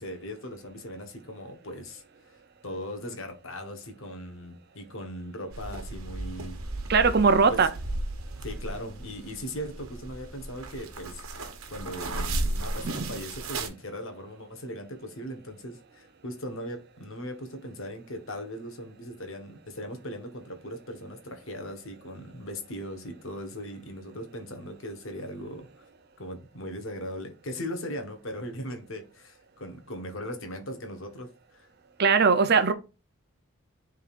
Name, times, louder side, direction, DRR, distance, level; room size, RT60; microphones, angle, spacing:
voice 1, 0.0-2.3 2.6-6.6 7.5-7.6 8.4-25.9 26.2-31.7, equal, 60° left, 1.4 m, -39 dB
sound 1, 5.5-13.7, right 2 dB, 75° right, 1.1 m, -35 dB
voice 2, 6.9-7.7 12.8-13.1 32.0-32.7, right 5 dB, 45° right, 0.6 m, -20 dB
10.5 x 3.8 x 2.5 m
head